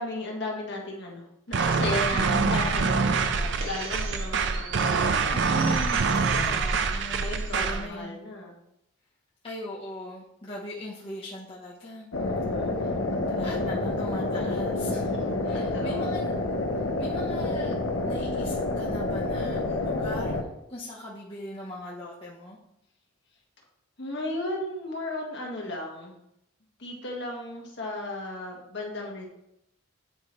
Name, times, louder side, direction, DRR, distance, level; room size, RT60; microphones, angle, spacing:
voice 1, 0.0-5.4 6.1-6.6 7.1-8.6 12.2-13.0 13.3-13.5 15.1-15.2 15.5-16.1 24.0-26.2 26.8-29.3, left 1 dB, 55° left, -1 dB, 1.6 m, -35 dB
sound 1, 1.5-7.9, right 4 dB, 55° right, 0.5 m, -25 dB
voice 2, 2.1-2.5 5.3-6.1 6.4-7.2 7.5-8.2 9.4-12.1 12.8-12.9 13.3-15.1 15.4-16.4 17.0-17.7 18.0-22.6, left 1 dB, 25° left, -6 dB, 0.9 m, -39 dB
sound 2, 3.1-7.6, right 3 dB, 85° right, 1.9 m, -44 dB
sound 3, 12.1-20.4, left 2 dB, 80° left, 0.8 m, -28 dB
9.0 x 4.6 x 3.1 m, 0.81 s
head